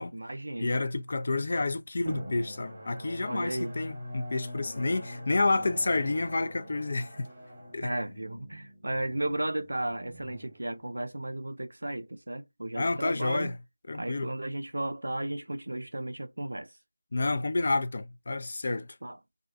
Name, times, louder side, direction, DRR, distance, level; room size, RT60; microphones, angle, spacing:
voice 1, 0.0-0.8 3.3-3.7 7.8-13.5 13.9-16.7 19.0-19.2, right 1 dB, 75° right, 0.4 m, -34 dB
voice 2, 0.6-7.3 7.7-7.9 12.8-13.6 13.9-14.3 17.1-18.9, left 3 dB, 40° left, 0.3 m, -29 dB
Drum, 2.0-11.3, equal, 15° right, 1.0 m, -43 dB
2.4 x 2.1 x 2.5 m
figure-of-eight pair, 170°, 0 cm